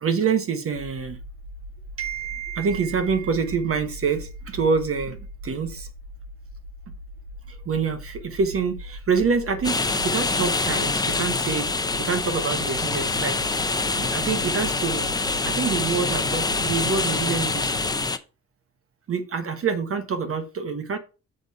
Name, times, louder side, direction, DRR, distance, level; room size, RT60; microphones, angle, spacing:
voice 1, 0.0-1.2 2.0-5.2 5.4-5.9 7.7-11.7 12.0-15.1 15.5-17.7 19.1-21.0, right 5 dB, 45° right, 1.1 m, -26 dB
sound 1, 0.7-18.0, equal, 85° right, 5.2 m, -40 dB
sound 2, 9.6-18.2, left 3 dB, 15° left, 0.6 m, -25 dB
6.6 x 5.0 x 5.6 m
cardioid pair, 90°, 30 cm